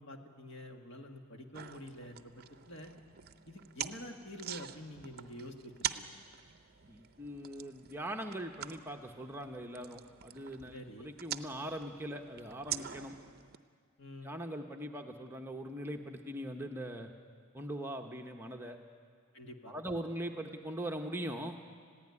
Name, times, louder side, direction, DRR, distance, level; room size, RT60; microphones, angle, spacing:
voice 1, 0.0-2.9 3.5-6.2 10.7-11.1 14.0-14.3 19.3-19.7, left 1 dB, 55° left, 3 dB, 1.8 m, -48 dB
sound 1, 1.5-13.6, right 10 dB, 45° right, 0.6 m, -45 dB
voice 2, 6.9-13.1 14.2-17.1 17.5-18.8 19.7-21.6, right 1 dB, 10° right, 3 dB, 0.8 m, -41 dB
20.5 x 15.5 x 9.7 m, 2.1 s
head